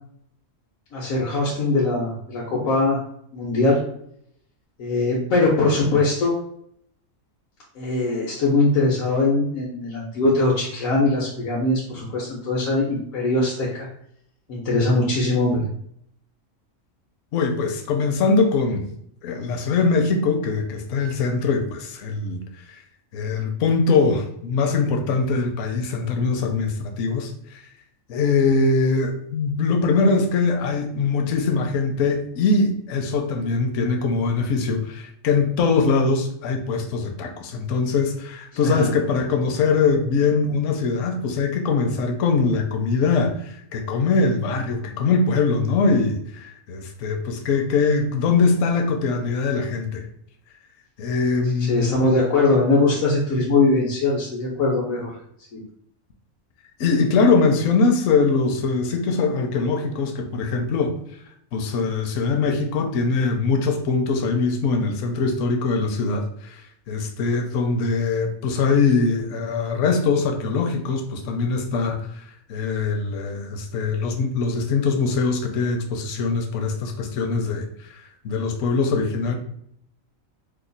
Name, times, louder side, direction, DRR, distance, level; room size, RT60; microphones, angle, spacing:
voice 1, 0.9-3.0 3.3-3.8 4.8-6.3 7.8-13.9 14.5-15.6 38.6-38.9 51.7-55.2 55.5-55.6, left 2 dB, 90° left, -5 dB, 1.2 m, -21 dB
voice 2, 17.3-18.9 19.2-22.8 23.1-27.6 28.1-50.1 51.0-52.0 56.8-60.9 61.5-66.6 66.9-72.2 72.5-79.4, left 4 dB, 70° left, 4 dB, 0.9 m, -22 dB
2.9 x 2.2 x 3.8 m, 0.70 s
omnidirectional pair, 1.4 m